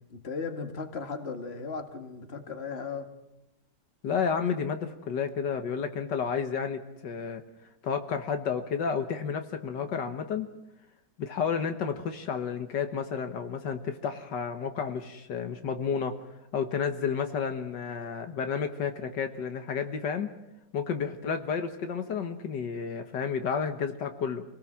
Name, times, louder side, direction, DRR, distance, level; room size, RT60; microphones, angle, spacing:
voice 1, 0.1-3.1, left 4 dB, 35° left, 6 dB, 2.2 m, -36 dB
voice 2, 4.0-7.4 7.8-10.5 11.2-16.2 16.5-20.3 20.7-24.4, left 6 dB, 75° left, 7 dB, 1.9 m, -31 dB
27.0 x 18.5 x 7.5 m, 0.92 s
omnidirectional pair, 1.9 m